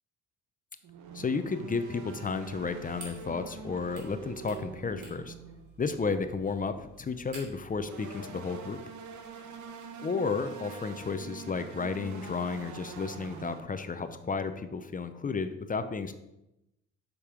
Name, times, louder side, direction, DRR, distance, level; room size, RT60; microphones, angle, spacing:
sound 1, 0.8-5.9 7.7-13.6, right 5 dB, 75° right, 1.0 m, -45 dB
voice 1, 1.1-5.3 5.8-8.8 10.0-16.1, left 4 dB, 25° left, 9 dB, 0.6 m, -33 dB
sound 2, 2.4-7.8, right 3 dB, 90° right, 3.0 m, -52 dB
7.2 x 5.4 x 5.0 m, 0.90 s
cardioid pair, 90°, 30 cm